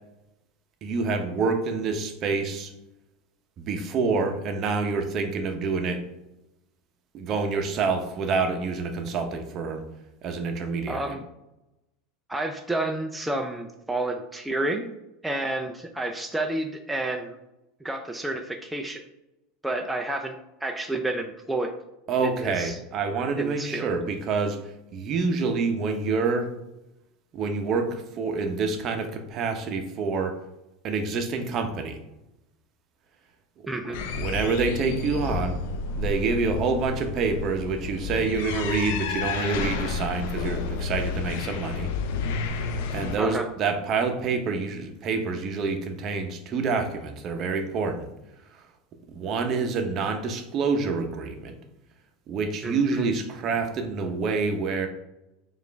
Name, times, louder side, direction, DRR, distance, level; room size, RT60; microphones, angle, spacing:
voice 1, 0.8-2.7 3.6-6.0 7.1-9.8 10.2-11.1 22.1-26.5 27.3-30.4 30.8-32.0 33.8-35.6 36.0-41.9 42.5-48.1 48.5-48.6 49.1-51.6 52.3-54.9, right 4 dB, 45° right, 5 dB, 0.7 m, -27 dB
voice 2, 10.9-11.3 12.3-14.9 15.2-17.4 17.8-19.0 19.6-20.3 20.6-21.7 22.2-22.8 23.4-23.9 33.7-34.0 43.2-43.5 52.6-53.1, right 2 dB, 5° right, 3 dB, 0.4 m, -30 dB
sound 1, 33.9-43.2, left 5 dB, 70° left, 0.4 m, -31 dB
4.9 x 2.5 x 3.3 m, 0.93 s
hypercardioid pair, 100°, 0 cm